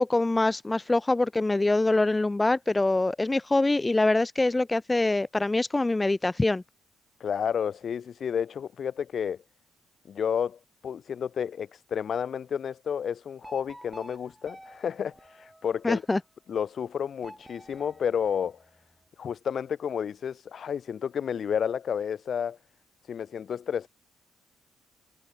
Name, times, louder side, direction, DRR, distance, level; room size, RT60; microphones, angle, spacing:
voice 1, 0.0-6.6 15.8-16.2, left 2 dB, 15° left, 0.7 m, -24 dB
voice 2, 7.2-9.4 10.1-16.0 16.5-18.6 19.2-22.6 23.1-23.9, left 7 dB, 55° left, 1.8 m, -31 dB
sound 1, 13.4-16.1 17.2-19.0, equal, 5° right, 5.3 m, -50 dB
cardioid pair, 90°, 0 cm